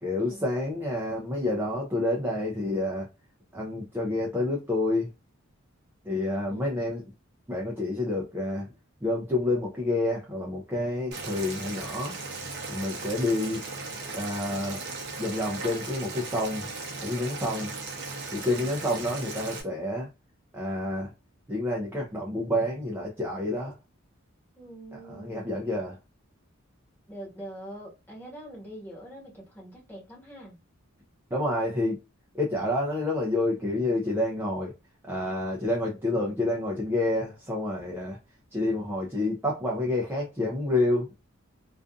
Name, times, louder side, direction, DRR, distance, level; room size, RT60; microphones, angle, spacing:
voice 1, 0.0-3.1 3.5-5.1 6.0-7.0 7.5-8.7 9.0-12.1 12.7-13.6 14.1-14.8 15.2-16.7 17.0-17.7 18.3-20.1 20.5-21.1 21.5-23.7 25.1-26.0 31.3-32.0 32.3-34.7 35.0-38.2 38.5-41.1, left 1 dB, 10° right, 0.4 m, -28 dB
Boiling, 11.1-19.6, right 3 dB, 55° right, 0.7 m, -37 dB
voice 2, 24.5-25.6 27.1-30.6, right 1 dB, 10° left, 1.3 m, -44 dB
2.5 x 2.4 x 2.3 m
head